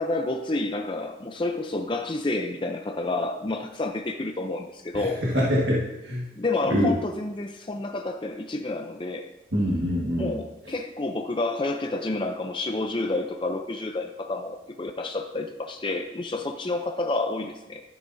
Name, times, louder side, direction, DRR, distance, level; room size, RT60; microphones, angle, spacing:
voice 1, 0.0-5.2 6.4-9.3 10.2-17.8, left 2 dB, 25° left, 4 dB, 0.5 m, -29 dB
voice 2, 5.3-6.2 6.7-6.9 9.5-10.3, equal, 60° right, -5 dB, 1.7 m, -24 dB
12.5 x 11.0 x 2.7 m, 0.96 s
head